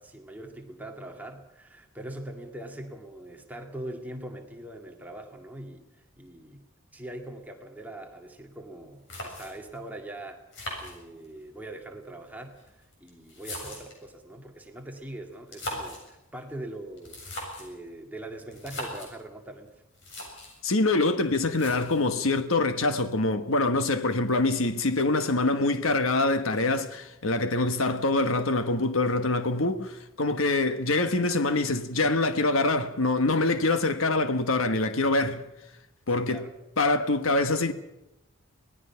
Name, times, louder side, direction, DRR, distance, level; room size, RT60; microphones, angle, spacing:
voice 1, 0.0-6.7 6.9-10.4 10.8-19.7 36.1-36.5, right 1 dB, 10° right, 2.1 m, -42 dB
sound 1, 8.7-8.8 9.1-9.8 10.5-11.5 12.4-14.1 15.3-16.1 17.0-17.8 18.5-19.1 19.7-19.8 19.9-20.6 21.5-22.1, left 1 dB, 60° left, 7.5 m, -39 dB
voice 2, 20.6-35.5 36.1-36.4 36.8-37.7, left 2 dB, 75° left, 1.4 m, -25 dB
25.5 x 19.0 x 5.8 m
head